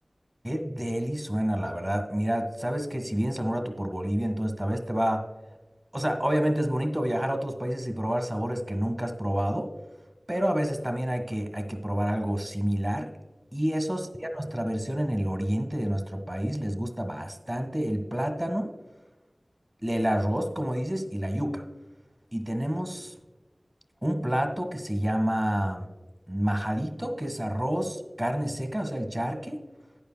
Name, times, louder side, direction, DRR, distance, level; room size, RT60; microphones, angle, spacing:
voice 1, 0.4-5.3 5.9-9.7 10.3-13.1 13.5-18.7 19.8-21.6 22.3-23.1 24.0-25.9 26.3-29.6, equal, 25° right, 7 dB, 1.7 m, -28 dB
12.0 x 9.6 x 2.3 m, 1.1 s
wide cardioid pair, 40°, 0 cm